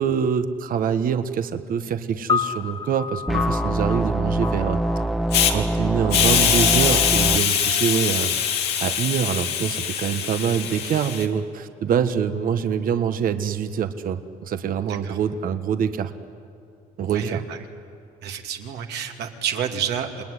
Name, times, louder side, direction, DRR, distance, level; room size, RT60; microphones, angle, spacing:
voice 1, 0.0-4.8 5.5-8.3 8.8-16.1 17.0-17.4, right 7 dB, 55° right, 10 dB, 1.3 m, -25 dB
sound 1, 2.3-8.7, left 6 dB, 25° left, 1.1 m, -32 dB
sound 2, 3.3-7.4, right 1 dB, ahead, 0.7 m, -24 dB
Hiss, 5.3-5.5 6.1-11.2, left 8 dB, 75° left, 2.4 m, -22 dB
voice 2, 17.1-17.6 18.2-20.2, right 8 dB, 75° right, 3 dB, 2.6 m, -29 dB
29.0 x 20.0 x 9.8 m, 2.5 s
cardioid pair, 110°, 17 cm